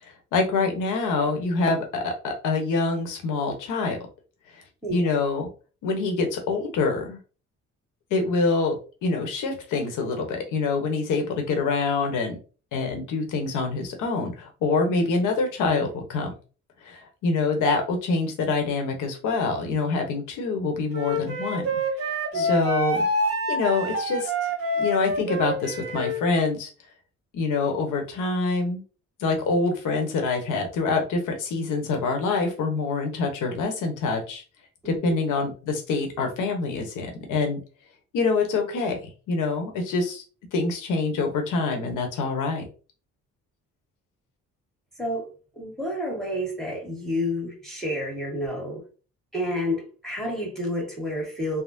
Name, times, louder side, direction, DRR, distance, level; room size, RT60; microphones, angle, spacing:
voice 1, 0.3-4.0 4.9-5.5 5.8-7.2 8.1-12.4 12.7-16.3 16.8-21.6 22.0-23.0 23.5-24.3 24.7-26.7 27.3-28.8 29.2-34.4 34.9-37.6 38.1-38.9 39.3-40.2 40.5-42.6, left 3 dB, 85° left, 0.9 m, -25 dB
Wind instrument woodwind instrument, 20.9-26.2, right 1 dB, 50° right, 1.0 m, -26 dB
voice 2, 34.8-35.2 45.0-45.3 45.6-48.8 49.3-51.6, left 1 dB, ahead, 1.5 m, -30 dB
3.5 x 2.0 x 2.5 m
cardioid pair, 90°, 30 cm